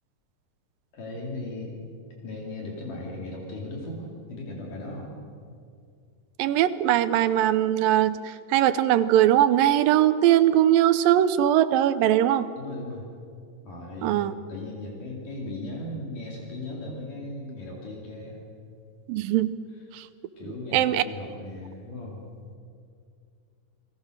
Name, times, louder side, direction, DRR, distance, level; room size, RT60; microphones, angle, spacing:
voice 1, 0.9-1.8 2.2-5.1 12.6-13.1 13.6-18.4 20.4-22.3, left 2 dB, 70° left, -2 dB, 4.5 m, -37 dB
voice 2, 6.4-12.5 14.0-14.3 19.1-19.5 19.9-20.1 20.7-21.0, right 12 dB, 90° right, 12 dB, 2.5 m, -21 dB
30.0 x 20.5 x 6.5 m, 2.3 s
omnidirectional pair, 3.9 m